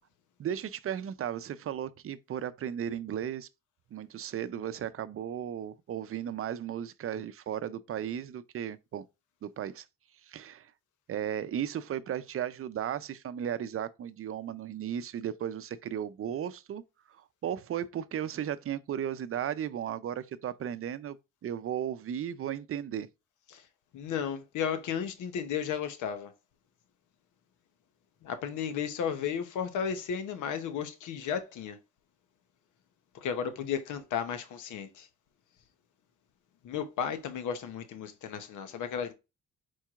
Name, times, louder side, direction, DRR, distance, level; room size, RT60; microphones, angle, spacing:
voice 1, 0.4-3.5 3.9-9.1 9.4-9.9 10.2-10.7 11.1-16.8 17.1-21.2 21.4-23.1, right 9 dB, 45° right, 0.5 m, -35 dB
voice 2, 23.9-26.3 28.2-31.8 33.1-35.1 36.6-39.1, left 7 dB, 80° left, 0.9 m, -34 dB
4.6 x 4.4 x 2.4 m
cardioid pair, 90°, 30 cm